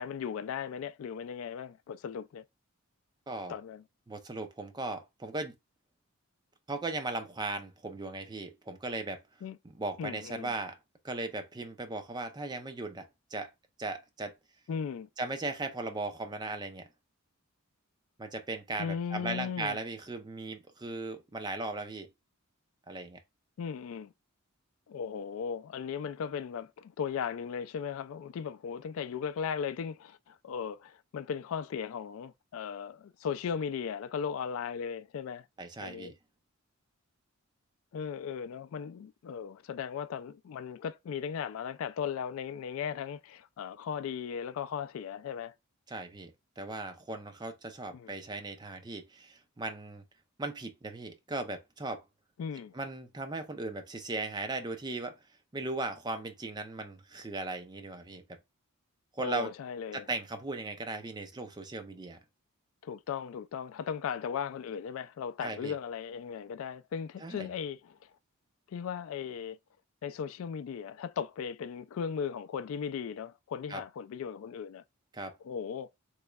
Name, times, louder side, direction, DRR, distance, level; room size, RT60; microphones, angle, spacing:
voice 1, 0.0-2.4 3.5-3.8 9.4-9.6 10.0-10.5 14.7-15.1 18.8-19.8 23.6-24.1 24.9-35.5 35.8-36.1 37.9-45.5 47.9-48.1 52.4-52.7 59.2-60.1 62.8-68.1 68.7-69.6 70.0-74.8 75.4-75.9, left 7 dB, 70° left, 0.3 m, -37 dB
voice 2, 3.3-3.6 4.1-5.6 6.7-9.2 9.7-10.8 11.0-13.5 13.8-14.3 15.2-16.9 18.2-22.1 22.9-23.2 35.6-36.1 45.9-50.0 50.4-52.0 52.7-55.1 55.5-58.2 59.1-59.5 59.9-62.2 65.4-65.8 67.2-67.5 73.7-73.8 75.1-75.3, right 2 dB, 20° right, 0.5 m, -37 dB
3.5 x 3.1 x 2.2 m
head